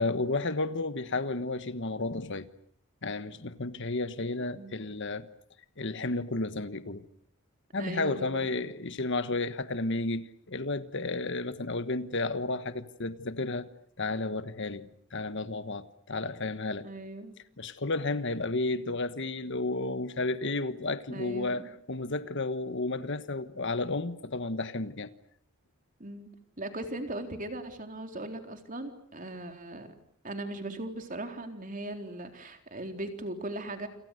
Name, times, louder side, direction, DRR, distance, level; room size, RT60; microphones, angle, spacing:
voice 1, 0.0-2.5 3.0-5.3 5.8-7.0 7.7-13.7 14.0-16.9 17.6-25.1, left 2 dB, 55° left, 1.3 m, -32 dB
voice 2, 7.8-8.4 16.8-17.4 21.1-21.7 26.0-26.3 26.6-29.9 30.2-33.9, right 1 dB, 35° right, 3.9 m, -39 dB
29.0 x 27.5 x 6.6 m
head